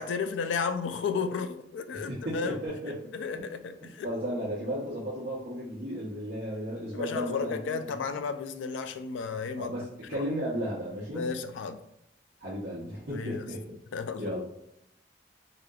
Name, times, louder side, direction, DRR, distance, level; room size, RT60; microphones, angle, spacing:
voice 1, 0.0-2.6 3.1-4.1 6.9-9.7 11.1-11.8 13.1-13.5 13.9-14.4, left 5 dB, 80° left, 0.3 m, -33 dB
voice 2, 1.9-3.0 3.3-3.4 4.0-7.8 8.1-8.2 9.3-11.3 12.4-13.6 14.2-14.4, equal, 55° right, 0.8 m, -34 dB
3.5 x 2.7 x 2.3 m
head